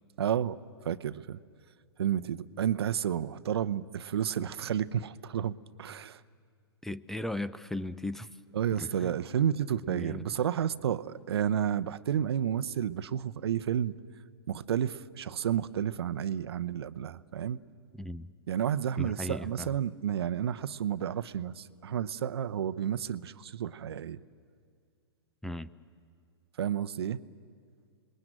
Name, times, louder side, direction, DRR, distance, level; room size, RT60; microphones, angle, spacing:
voice 1, 0.2-0.6 0.8-1.4 2.0-6.2 8.5-13.9 14.5-17.6 18.5-24.2 26.6-27.2, right 9 dB, 70° right, 14 dB, 0.8 m, -31 dB
voice 2, 6.8-8.4 8.8-9.1 9.9-10.3 17.9-18.3 19.0-19.7 25.4-25.7, left 1 dB, 5° left, 15 dB, 0.6 m, -37 dB
29.5 x 21.0 x 9.0 m, 2.2 s
hypercardioid pair, 120°, 14 cm